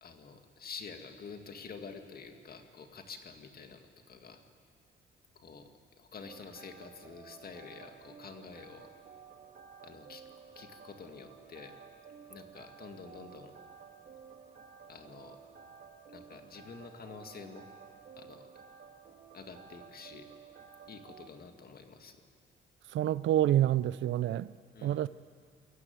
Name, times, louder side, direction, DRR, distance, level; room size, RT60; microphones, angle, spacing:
voice 1, 0.0-4.4 5.4-5.7 6.0-8.9 9.8-10.2 10.6-11.7 12.3-13.5 14.9-15.4 16.1-17.7 18.2-18.5 19.3-20.3 20.9-22.2 24.7-25.0, left 5 dB, 50° left, 2.0 m, -48 dB
sound 1, 6.2-21.3, right 6 dB, 55° right, 1.7 m, -54 dB
voice 2, 22.9-24.5 24.8-25.1, right 12 dB, 70° right, 0.5 m, -27 dB
22.0 x 14.0 x 9.3 m
cardioid pair, 90°, 20 cm